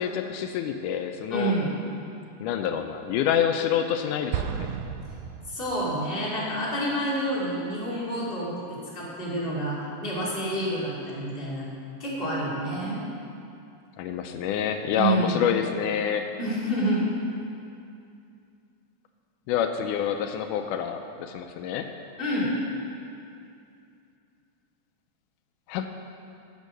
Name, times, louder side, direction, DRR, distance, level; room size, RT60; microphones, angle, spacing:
voice 1, 0.0-1.5 2.4-4.7 14.0-16.3 19.5-21.9 25.7-25.9, left 8 dB, 85° left, 6 dB, 2.1 m, -27 dB
voice 2, 1.3-1.7 5.5-8.6 8.9-11.7 12.0-13.0 14.9-15.4 16.4-17.0 22.2-22.5, right 1 dB, 15° left, -7 dB, 2.8 m, -28 dB
Explosion, 4.3-6.2, right 8 dB, 80° right, 1.8 m, -33 dB
14.0 x 7.3 x 6.5 m, 2.6 s
omnidirectional pair, 3.6 m